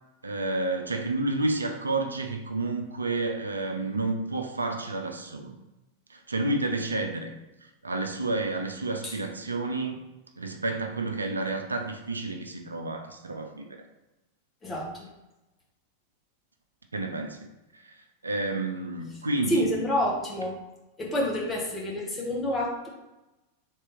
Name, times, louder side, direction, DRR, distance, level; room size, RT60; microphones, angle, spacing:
voice 1, 0.2-5.6 6.1-7.3 7.6-10.0 10.4-13.9 16.9-17.5 17.7-19.7, right 2 dB, 75° right, 4 dB, 0.4 m, -30 dB
voice 2, 14.6-15.1 19.5-20.6 21.0-22.9, equal, 15° left, -3 dB, 1.2 m, -28 dB
3.5 x 2.8 x 3.4 m, 0.99 s
figure-of-eight pair, 90°, 0 cm